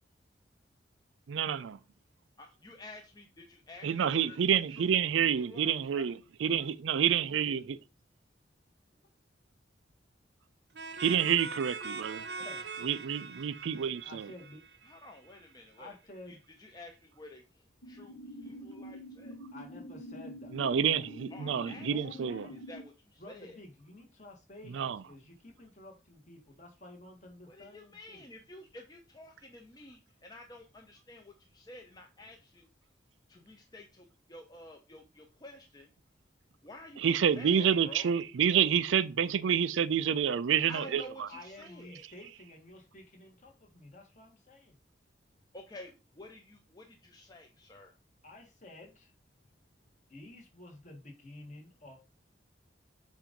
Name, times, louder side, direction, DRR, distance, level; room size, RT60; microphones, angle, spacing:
voice 1, 1.3-1.8 3.8-7.8 11.0-12.2 12.8-14.3 20.5-22.5 24.7-25.0 37.0-41.3, right 8 dB, 85° right, 0.4 m, -28 dB
voice 2, 2.4-4.4 4.7-6.1 14.8-16.0 16.3-19.4 21.3-21.9 22.5-23.6 27.4-32.7 33.3-35.9 36.6-38.1 40.7-42.1 45.5-47.9, left 1 dB, 20° left, 0.6 m, -51 dB
sound 1, 10.7-15.3, right 4 dB, 60° right, 0.8 m, -42 dB
voice 3, 12.3-12.7 14.0-14.6 15.8-16.4 19.5-20.5 21.9-22.6 23.2-28.3 41.3-44.8 48.2-49.1 50.1-52.0, left 1 dB, 40° left, 1.6 m, -51 dB
sound 2, 17.8-22.8, equal, 85° left, 1.2 m, -46 dB
7.4 x 2.6 x 5.1 m
head